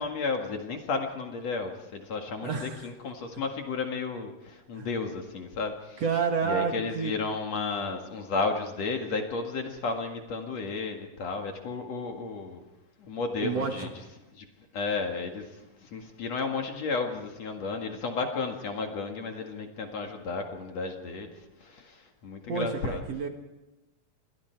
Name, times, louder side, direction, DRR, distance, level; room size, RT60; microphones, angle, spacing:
voice 1, 0.0-6.0 6.4-12.6 13.0-13.9 14.3-14.5 14.7-21.3 21.6-23.0, left 4 dB, 50° left, 3 dB, 2.8 m, -33 dB
voice 2, 2.4-2.9 4.8-4.9 6.0-7.1 13.4-13.9 22.5-23.3, right 5 dB, 55° right, 4 dB, 2.4 m, -29 dB
29.5 x 22.5 x 4.7 m, 1.0 s
omnidirectional pair, 4.1 m